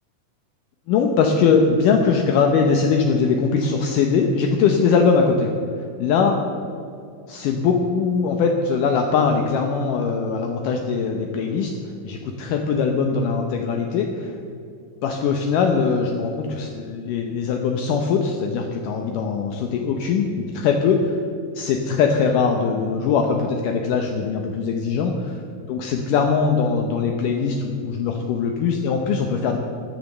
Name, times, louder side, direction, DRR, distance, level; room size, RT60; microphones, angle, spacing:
voice 1, 0.9-5.5 5.8-6.4 7.3-11.7 12.0-14.4 15.0-21.2 21.6-25.4 25.7-29.6, left 5 dB, 75° left, 3 dB, 2.4 m, -21 dB
16.5 x 10.5 x 6.6 m, 2.5 s
omnidirectional pair, 4.1 m